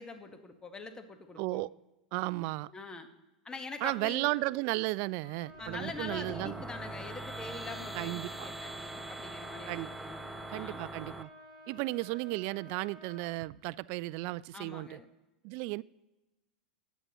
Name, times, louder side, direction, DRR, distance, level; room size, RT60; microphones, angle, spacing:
voice 1, 0.0-1.6 2.7-3.1 3.4-4.3 5.6-10.2 10.5-10.8 14.5-15.0, left 3 dB, 15° left, 1.4 m, -44 dB
voice 2, 1.4-1.7 2.1-2.7 3.8-6.6 7.9-8.5 9.7-9.9 10.5-11.3 11.7-15.0 15.4-15.8, right 21 dB, 50° right, 0.3 m, -34 dB
Trumpet, 5.2-13.4, equal, 80° left, 3.6 m, -52 dB
sound 1, 5.5-11.2, right 2 dB, ahead, 0.6 m, -42 dB
19.5 x 8.2 x 3.0 m
hypercardioid pair, 100°, 4 cm